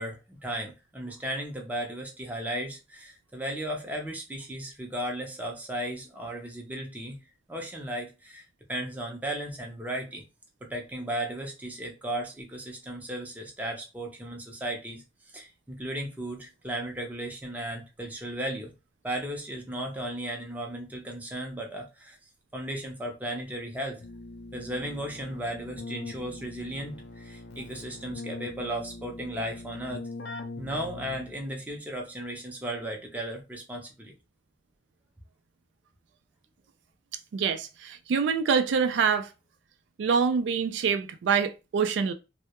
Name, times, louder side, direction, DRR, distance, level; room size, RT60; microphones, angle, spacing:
voice 1, 0.0-7.2 7.5-10.2 10.6-18.7 19.0-22.2 22.5-24.0 24.5-30.1 30.6-34.1, right 1 dB, 10° right, 0.4 m, -35 dB
Keyboard (musical), 24.0-31.6, left 2 dB, 70° left, 0.4 m, -42 dB
voice 2, 37.3-39.3 40.0-42.1, right 6 dB, 80° right, 0.3 m, -25 dB
2.2 x 2.0 x 2.8 m
head